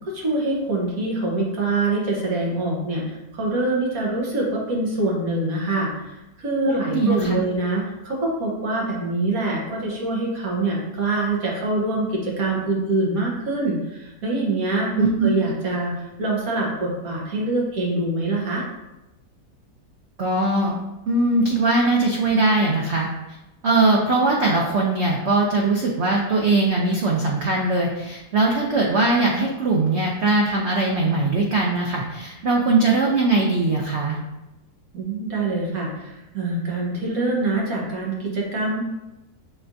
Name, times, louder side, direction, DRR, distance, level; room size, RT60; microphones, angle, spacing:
voice 1, 0.0-18.6 34.9-38.8, right 2 dB, 55° right, -3 dB, 1.5 m, -25 dB
voice 2, 6.7-7.4 15.0-15.3 20.2-20.8 21.1-23.1 23.6-34.2, right 2 dB, 85° right, -2 dB, 0.6 m, -20 dB
6.2 x 3.3 x 2.6 m, 1.0 s
omnidirectional pair, 1.9 m